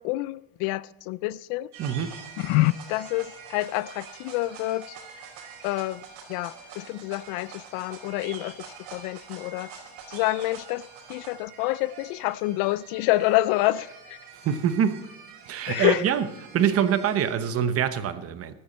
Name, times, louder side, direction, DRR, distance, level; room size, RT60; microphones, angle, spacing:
voice 1, 0.0-1.7 2.4-5.0 5.6-6.0 6.3-8.5 8.9-9.7 10.1-10.8 11.1-14.2 15.7-16.0, left 18 dB, 60° left, 0.5 m, -27 dB
sound 1, 1.7-17.3, right 6 dB, 85° right, 5.1 m, -45 dB
voice 2, 1.8-2.2 14.3-15.0 15.5-16.3 16.5-18.5, right 8 dB, 35° right, 1.0 m, -25 dB
14.5 x 12.5 x 4.3 m
cardioid pair, 150°, 43 cm